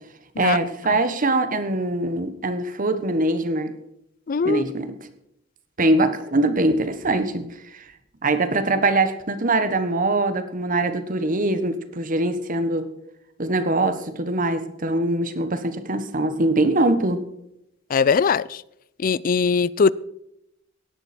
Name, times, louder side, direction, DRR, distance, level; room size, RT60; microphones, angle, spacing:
voice 1, 0.4-3.7 4.4-5.0 5.8-7.8 8.2-12.9 13.4-17.2, right 2 dB, 45° right, 1.2 m, -22 dB
voice 2, 4.3-4.6 17.9-18.4 19.0-19.9, left 5 dB, 45° left, 0.4 m, -20 dB
17.0 x 11.0 x 4.3 m
head